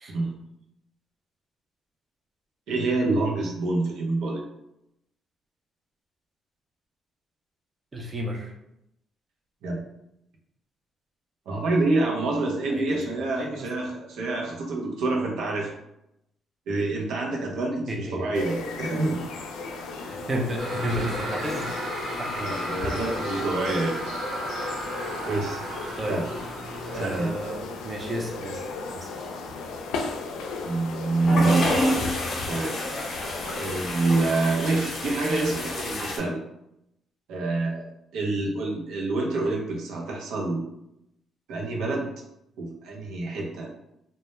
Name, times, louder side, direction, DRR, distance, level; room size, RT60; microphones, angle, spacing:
voice 1, 2.7-4.4 9.6-9.8 11.5-15.7 16.7-19.2 22.3-24.0 25.2-25.6 26.1-26.2 26.9-27.3 30.6-32.1 32.5-32.8 33.6-36.4 37.3-37.9 38.1-40.7 41.5-42.1 42.6-43.8, right 2 dB, 85° right, -1 dB, 0.6 m, -27 dB
voice 2, 7.9-8.5 12.7-13.0 13.3-13.6 17.9-18.3 20.0-21.7 22.2-22.5 26.0-26.2 26.9-28.6 28.9-29.3, equal, 25° right, 0 dB, 0.5 m, -32 dB
sound 1, 18.3-34.2, left 3 dB, 90° left, 0.3 m, -35 dB
sound 2, 20.6-27.3, right 1 dB, 65° right, 0.9 m, -34 dB
sound 3, 31.2-36.2, left 1 dB, 55° left, 0.7 m, -28 dB
2.1 x 2.1 x 3.0 m, 0.82 s
cardioid pair, 90°, 0 cm